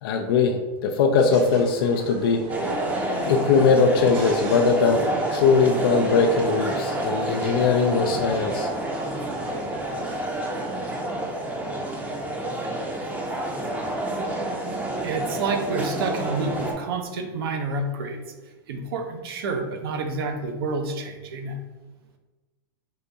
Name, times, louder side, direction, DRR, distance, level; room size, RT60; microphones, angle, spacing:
voice 1, 0.0-2.5 3.2-8.7, left 5 dB, 75° left, 4 dB, 0.4 m, -21 dB
sound 1, 1.2-10.3, right 3 dB, 50° right, 0.9 m, -41 dB
sound 2, 2.5-16.7, right 1 dB, 10° right, 0.6 m, -29 dB
voice 2, 15.0-18.2 18.7-21.6, right 3 dB, 75° right, 6 dB, 0.6 m, -29 dB
3.8 x 2.3 x 3.9 m, 1.2 s
supercardioid pair, 130°, 12 cm